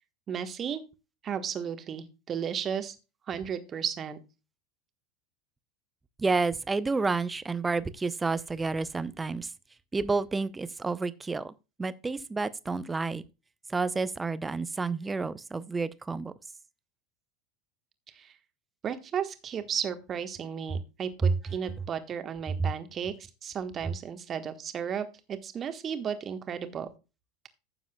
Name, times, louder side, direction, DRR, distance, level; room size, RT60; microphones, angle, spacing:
voice 1, 0.3-0.8 1.2-3.0 3.3-4.2 18.1-18.4 18.8-23.1 23.4-26.9, right 8 dB, 30° right, 1.3 m, -34 dB
voice 2, 6.2-9.5 9.9-11.5 11.8-13.2 13.7-16.3 21.2-21.3 22.6-22.7, right 4 dB, 15° right, 0.7 m, -29 dB
15.0 x 7.0 x 2.3 m
figure-of-eight pair, 80°, 0 cm